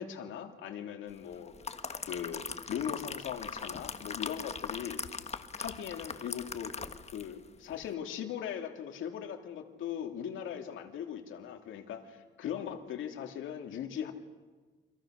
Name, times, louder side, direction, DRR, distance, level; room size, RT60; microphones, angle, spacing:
voice 1, 0.0-1.5 2.1-5.0 5.6-6.7 7.1-14.1, left 9 dB, 80° left, 4 dB, 2.9 m, -39 dB
sound 1, 1.3-7.4 7.7-7.9, left 5 dB, 35° left, 1.5 m, -40 dB
29.0 x 25.5 x 6.5 m, 1.3 s
cardioid pair, 90°, 20 cm